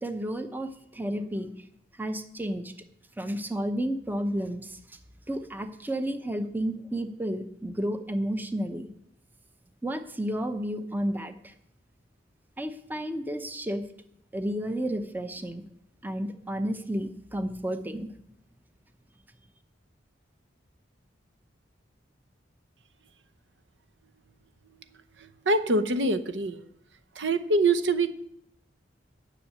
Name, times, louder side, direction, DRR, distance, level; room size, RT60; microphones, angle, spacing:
voice 1, 0.0-1.5 2.0-2.7 3.2-4.8 5.3-8.9 9.8-11.5 12.6-13.8 14.3-15.6 16.0-18.1, right 1 dB, 10° right, 8 dB, 0.7 m, -31 dB
voice 2, 25.2-26.6 27.1-28.1, right 2 dB, 70° right, 12 dB, 0.8 m, -25 dB
10.0 x 6.4 x 8.6 m, 0.73 s
head